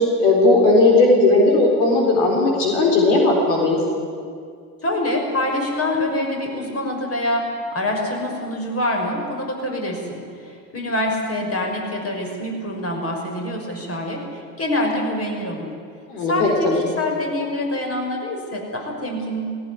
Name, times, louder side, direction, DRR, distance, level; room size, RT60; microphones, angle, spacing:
voice 1, 0.0-3.8 16.1-16.9, left 2 dB, 70° left, 0 dB, 4.4 m, -17 dB
voice 2, 4.8-15.7 16.3-19.6, left 1 dB, 30° left, 1 dB, 6.2 m, -25 dB
18.0 x 17.5 x 9.8 m, 2.2 s
hypercardioid pair, 70°, 49 cm